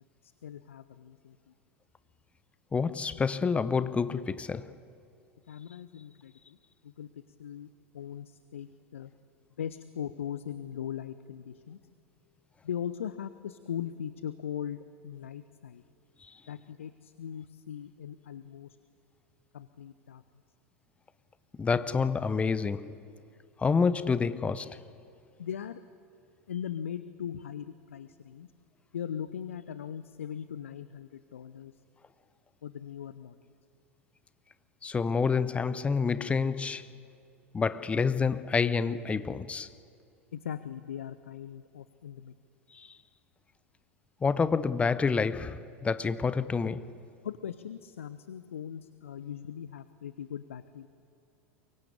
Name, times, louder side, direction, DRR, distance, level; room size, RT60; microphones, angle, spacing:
voice 1, 0.2-1.5 5.5-6.6 6.8-7.7 7.9-9.1 9.6-11.8 12.6-15.8 16.5-18.8 19.5-20.2 25.4-25.8 26.5-28.5 28.9-31.7 32.6-33.4 40.3-42.3 47.2-50.9, left 9 dB, 70° left, 0.8 m, -39 dB
voice 2, 2.7-4.8 21.6-23.0 23.6-24.8 34.8-36.9 37.5-39.7 42.7-42.9 44.2-47.0, left 5 dB, 15° left, 0.7 m, -28 dB
24.0 x 22.5 x 8.6 m
figure-of-eight pair, 80°, 7 cm